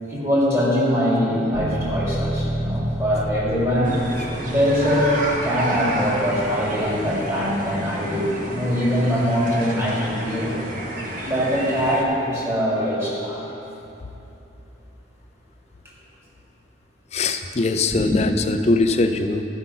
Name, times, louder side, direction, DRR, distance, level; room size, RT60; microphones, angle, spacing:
voice 1, 0.1-3.9 4.4-5.2 5.4-10.5 11.2-13.4 17.9-18.3, equal, 15° right, -7 dB, 2.1 m, -22 dB
sound 1, 1.5-12.1, right 1 dB, 65° right, 1.1 m, -33 dB
sound 2, 3.8-12.0, right 1 dB, 40° right, 1.0 m, -31 dB
voice 2, 17.1-19.5, left 3 dB, 35° left, 7 dB, 0.4 m, -21 dB
12.5 x 5.8 x 5.5 m, 2.9 s
head